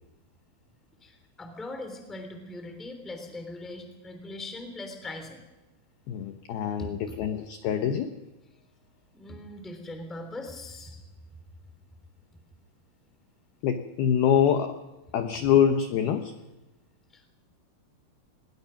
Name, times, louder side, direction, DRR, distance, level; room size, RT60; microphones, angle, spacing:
voice 1, 1.0-5.4 6.8-6.9 9.1-11.0 17.1-17.3, left 2 dB, ahead, 5 dB, 1.9 m, -40 dB
voice 2, 6.1-8.1 13.6-14.8 15.1-16.3, left 8 dB, 80° left, 7 dB, 2.2 m, -25 dB
24.0 x 21.5 x 5.9 m, 1.1 s
omnidirectional pair, 5.9 m